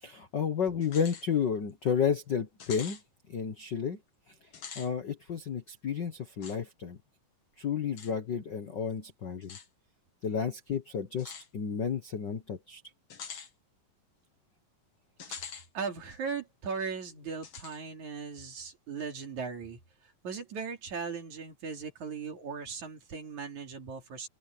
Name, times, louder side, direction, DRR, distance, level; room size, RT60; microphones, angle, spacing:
voice 1, 0.0-3.0 3.3-4.0 4.8-7.0 7.6-9.6 10.2-12.8, left 7 dB, 80° left, 1.0 m, -32 dB
sound 1, 0.8-1.3 1.7-1.8 2.6-3.0 4.4-4.9 6.4-6.6 8.0-8.1 9.4-9.7 11.2-11.5 13.1-13.5 15.2-15.7 16.1-16.2 17.4-17.8, left 6 dB, 45° left, 2.9 m, -44 dB
voice 2, 15.7-24.3, right 5 dB, 55° right, 4.2 m, -38 dB
omnidirectional pair, 4.1 m